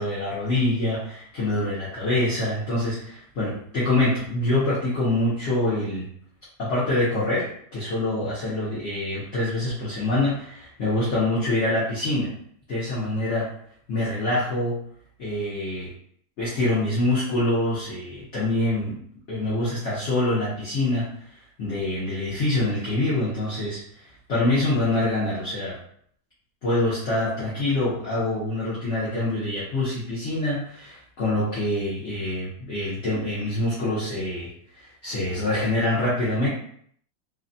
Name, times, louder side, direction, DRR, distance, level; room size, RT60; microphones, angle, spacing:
voice 1, 0.0-6.0 6.6-12.4 12.7-13.5 13.9-14.8 15.2-15.9 16.4-19.0 19.3-21.2 21.6-25.8 26.6-36.5, left 1 dB, 55° left, -9 dB, 0.8 m, -25 dB
3.3 x 2.2 x 2.5 m, 0.62 s
omnidirectional pair, 2.1 m